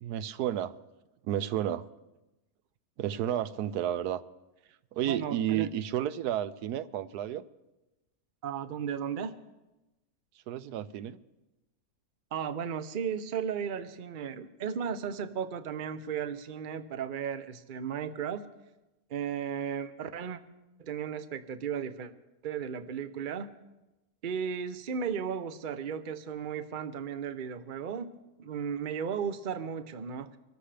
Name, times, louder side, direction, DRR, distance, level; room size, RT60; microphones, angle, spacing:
voice 1, 0.0-0.8 1.2-1.9 3.0-4.2 4.9-7.4 10.5-11.2, right 11 dB, 85° right, 15 dB, 1.2 m, -31 dB
voice 2, 5.0-5.7 8.4-9.4 12.3-18.5 19.1-20.4 20.8-22.1 22.4-23.5 24.2-28.1 28.4-30.4, right 7 dB, 45° right, 11 dB, 0.7 m, -35 dB
25.0 x 13.0 x 3.4 m, 1.0 s
omnidirectional pair, 1.6 m